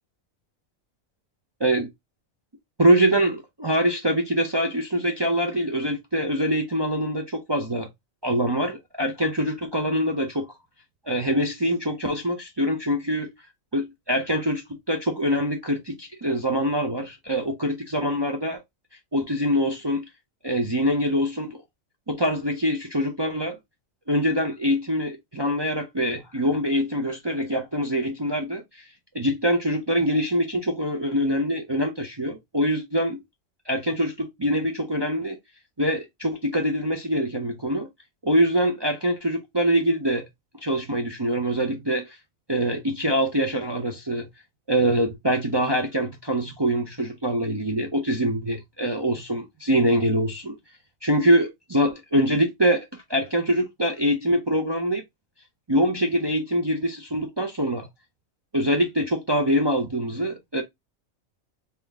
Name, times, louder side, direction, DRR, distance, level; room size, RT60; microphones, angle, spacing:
voice 1, 2.8-7.9 8.2-10.4 11.1-13.3 13.7-14.6 14.9-18.6 19.1-20.0 20.4-21.6 22.1-23.6 24.1-28.6 29.1-33.2 33.7-35.4 35.8-37.9 38.2-40.2 40.6-42.2 42.5-44.3 44.7-50.5 51.0-55.0 55.7-57.9 58.5-60.6, equal, 30° right, 0.5 m, -24 dB
3.8 x 2.9 x 3.4 m
omnidirectional pair, 1.4 m